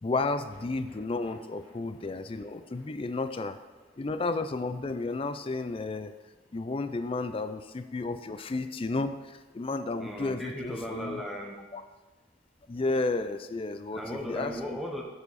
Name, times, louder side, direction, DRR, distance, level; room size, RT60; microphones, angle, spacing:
voice 1, 0.0-3.6 4.0-6.1 6.5-11.2 11.7-11.8 12.7-14.0 14.3-14.5, left 3 dB, 30° left, 10 dB, 0.4 m, -32 dB
sound 1, 0.5-6.9 7.2-7.3 7.6-7.7, left 2 dB, 85° left, 2.1 m, -60 dB
voice 2, 10.0-11.6 13.9-15.0, equal, ahead, -1 dB, 0.8 m, -36 dB
7.0 x 6.8 x 4.1 m, 1.2 s
head